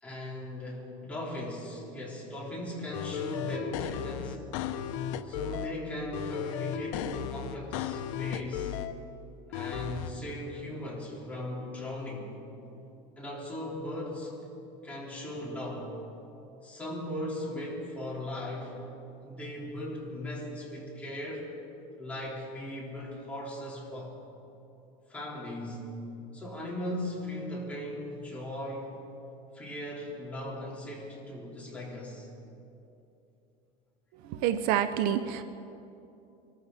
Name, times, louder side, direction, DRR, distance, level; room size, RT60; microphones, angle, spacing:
voice 1, 0.0-4.5 5.2-8.7 9.5-12.3 13.2-14.3 14.8-15.9 16.6-18.8 19.2-21.5 22.0-24.2 25.1-25.9 26.3-29.0 29.5-32.3, left 1 dB, 10° left, -5 dB, 4.0 m, -38 dB
sound 1, 2.9-5.7 6.1-8.9 9.5-10.1, left 10 dB, 80° left, 0.8 m, -35 dB
voice 2, 34.4-35.4, right 10 dB, 65° right, 11 dB, 0.7 m, -27 dB
24.0 x 14.5 x 4.1 m, 2.8 s
cardioid pair, 140°, 17 cm